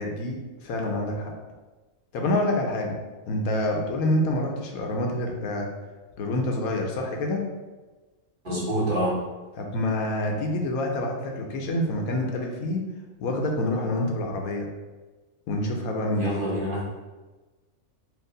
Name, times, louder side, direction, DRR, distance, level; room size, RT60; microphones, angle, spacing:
voice 1, 0.0-1.3 2.1-3.0 3.3-5.7 6.2-7.4 9.6-12.8 13.2-14.7 15.5-16.4, left 1 dB, 80° left, 1 dB, 1.2 m, -27 dB
voice 2, 8.4-9.2 16.1-16.8, right 1 dB, 40° right, -8 dB, 1.6 m, -26 dB
4.6 x 2.8 x 3.8 m, 1.2 s
omnidirectional pair, 1.5 m